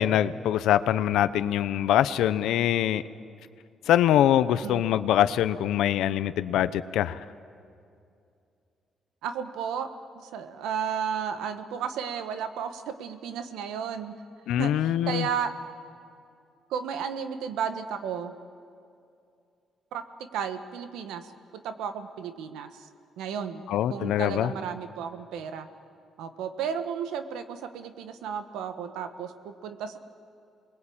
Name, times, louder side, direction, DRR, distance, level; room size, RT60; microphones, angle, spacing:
voice 1, 0.0-3.0 3.9-7.2 14.5-15.3 23.7-24.5, left 11 dB, 85° left, 14 dB, 0.8 m, -23 dB
voice 2, 9.2-9.9 10.1-14.2 14.6-15.5 16.7-18.3 19.9-21.3 21.5-22.9 23.2-23.6 23.9-25.7 26.2-30.0, right 7 dB, 90° right, 9 dB, 1.4 m, -33 dB
29.0 x 21.5 x 8.8 m, 2.5 s
cardioid pair, 90°, 0 cm